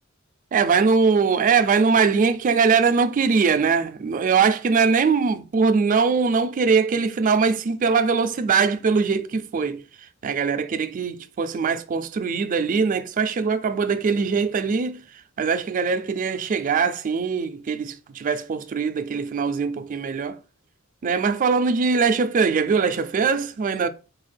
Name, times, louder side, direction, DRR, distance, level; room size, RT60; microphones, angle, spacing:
voice 1, 0.5-9.8 10.2-15.0 15.4-20.4 21.0-23.9, right 5 dB, 40° right, 0.3 m, -21 dB
4.1 x 2.4 x 3.2 m
head